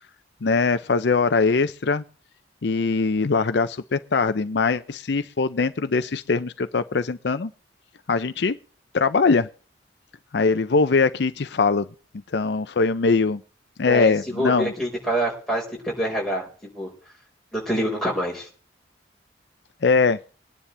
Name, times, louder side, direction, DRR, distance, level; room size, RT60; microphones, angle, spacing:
voice 1, 0.4-2.0 2.6-7.5 8.1-8.6 8.9-9.5 10.3-11.9 12.3-13.4 13.8-14.7 19.8-20.2, left 4 dB, 65° left, 11 dB, 0.6 m, -21 dB
voice 2, 13.9-16.5 16.7-16.9 17.5-18.5, right 1 dB, ahead, -3 dB, 4.8 m, -26 dB
22.0 x 10.0 x 3.4 m, 0.40 s
head